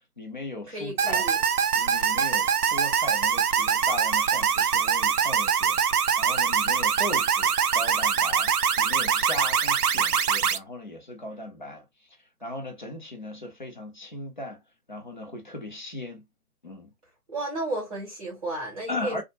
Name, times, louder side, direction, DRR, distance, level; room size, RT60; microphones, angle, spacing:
voice 1, 0.2-1.2 1.7-8.5 8.8-11.9 12.4-14.6 14.9-16.3 16.6-16.9 18.9-19.2, left 2 dB, 35° left, 0.6 m, -37 dB
voice 2, 0.7-1.4 17.3-19.2, right 2 dB, 25° right, 0.9 m, -33 dB
sound 1, 1.0-10.6, right 7 dB, 85° right, 0.5 m, -23 dB
2.4 x 2.1 x 2.8 m
figure-of-eight pair, 150°, 44 cm